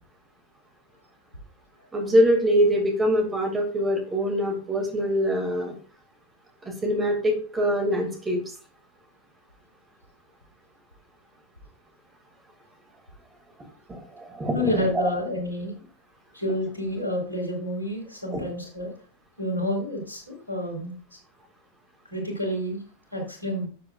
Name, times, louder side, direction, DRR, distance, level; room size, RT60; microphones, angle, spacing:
voice 1, 1.9-5.7 6.6-8.4 13.9-15.1 18.3-18.4, equal, 15° right, 3 dB, 2.5 m, -24 dB
voice 2, 14.5-15.7 16.3-18.9 19.4-21.2 22.1-22.8 23.1-23.7, equal, 85° right, 0 dB, 3.9 m, -29 dB
13.0 x 7.7 x 2.5 m, 0.39 s
figure-of-eight pair, 90°, 0 cm